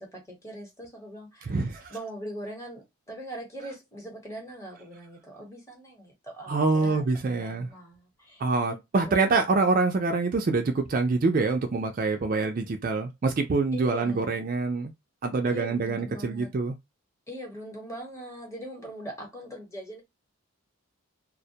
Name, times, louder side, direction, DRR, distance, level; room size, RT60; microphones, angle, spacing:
voice 1, 0.0-1.5 1.9-7.0 7.3-8.8 9.0-9.4 13.7-14.3 15.5-16.5 17.3-20.0, right 1 dB, 15° left, 0.9 m, -41 dB
voice 2, 1.4-1.9 6.5-7.7 8.4-14.9 15.2-16.8, right 3 dB, 40° right, 0.4 m, -25 dB
2.1 x 2.1 x 2.7 m
head